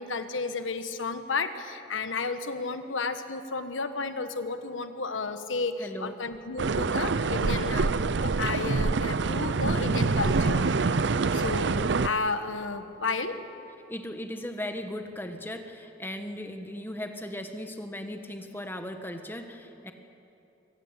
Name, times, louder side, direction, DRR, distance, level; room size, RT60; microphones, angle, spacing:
voice 1, 0.0-7.9 8.2-10.7 11.3-11.7 12.0-13.4, left 4 dB, 90° left, 9 dB, 1.3 m, -32 dB
voice 2, 5.8-6.2 13.9-19.9, left 1 dB, 10° left, 6 dB, 1.3 m, -37 dB
sound 1, 6.6-12.1, right 4 dB, 65° right, 0.6 m, -26 dB
24.5 x 17.5 x 8.2 m, 2.9 s
head